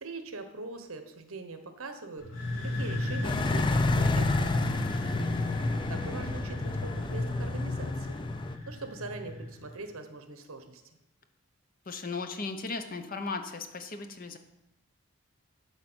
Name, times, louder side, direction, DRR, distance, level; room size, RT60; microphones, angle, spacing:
voice 1, 0.0-4.9 5.9-8.2 8.7-10.8, right 3 dB, 70° right, 7 dB, 1.0 m, -42 dB
sound 1, 2.2-9.8, left 1 dB, 85° left, 1.9 m, -34 dB
sound 2, 3.2-8.6, left 3 dB, 20° left, 0.3 m, -30 dB
voice 2, 5.0-5.7 11.9-14.4, left 4 dB, 40° left, 7 dB, 0.8 m, -37 dB
11.5 x 4.2 x 6.2 m, 0.91 s
head